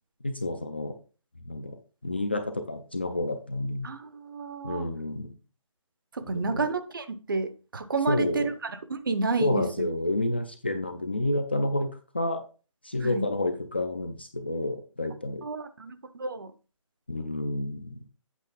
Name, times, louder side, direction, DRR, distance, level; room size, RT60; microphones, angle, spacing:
voice 1, 0.2-0.9 1.5-1.8 2.0-3.9 4.6-5.3 6.2-6.7 8.1-8.5 9.4-12.4 12.8-15.4 17.1-18.1, left 2 dB, 20° left, 0.4 m, -29 dB
voice 2, 3.8-4.9 6.1-9.6 13.0-13.3 15.4-16.5, right 3 dB, 40° right, 0.7 m, -30 dB
8.3 x 6.2 x 3.6 m
hypercardioid pair, 175°, 17 cm